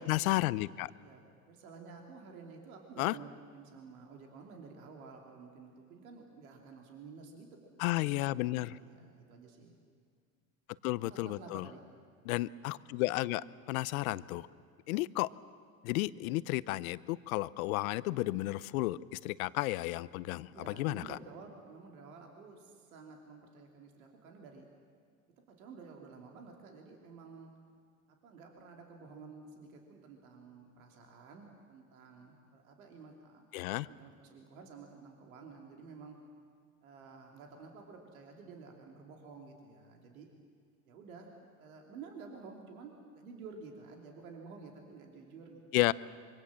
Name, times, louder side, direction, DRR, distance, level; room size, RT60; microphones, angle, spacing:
voice 1, 0.0-0.9 3.0-3.1 7.8-8.8 10.8-11.7 12.3-14.5 14.9-15.3 15.8-21.2 33.5-33.9 45.7-45.9, left 18 dB, 80° left, 18 dB, 0.8 m, -32 dB
voice 2, 1.0-7.6 7.9-9.8 11.1-11.8 20.5-24.7 25.5-27.5 28.2-33.5 33.8-36.1 36.8-40.3 40.9-45.6, right 4 dB, 85° right, 2 dB, 3.2 m, -51 dB
25.5 x 23.5 x 7.6 m, 2.2 s
supercardioid pair, 95°, 41 cm